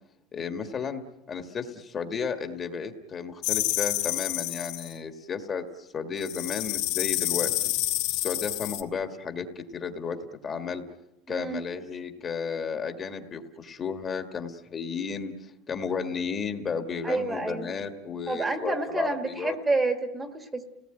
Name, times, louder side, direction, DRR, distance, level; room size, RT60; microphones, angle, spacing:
voice 1, 0.3-1.0 1.3-7.7 8.1-10.2 10.4-10.8 11.3-19.6, left 5 dB, 20° left, 7 dB, 1.6 m, -33 dB
sound 1, 3.4-4.9 6.2-8.8, left 17 dB, 65° left, 1.8 m, -28 dB
voice 2, 11.3-11.6 17.0-17.7 18.3-20.6, right 3 dB, 10° right, 7 dB, 1.6 m, -29 dB
30.0 x 18.5 x 9.0 m, 0.95 s
cardioid pair, 170°, 0 cm